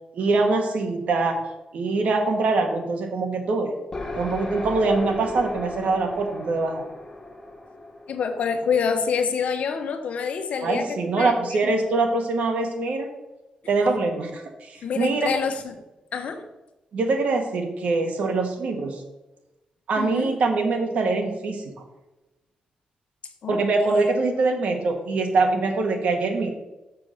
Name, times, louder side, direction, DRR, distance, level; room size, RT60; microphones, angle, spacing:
voice 1, 0.1-1.4 1.7-3.7 4.2-6.8 10.6-13.1 13.7-15.3 16.9-19.0 19.9-21.6 23.5-26.5, right 3 dB, 70° right, 3 dB, 1.7 m, -23 dB
sound 1, 3.9-9.5, left 2 dB, 20° left, 1.3 m, -36 dB
voice 2, 8.1-11.3 11.6-11.8 14.8-15.7 16.1-16.4 20.0-20.3 23.4-23.6, left 6 dB, 65° left, 6 dB, 1.1 m, -26 dB
6.9 x 6.7 x 6.4 m, 1.0 s
wide cardioid pair, 180°, 2 cm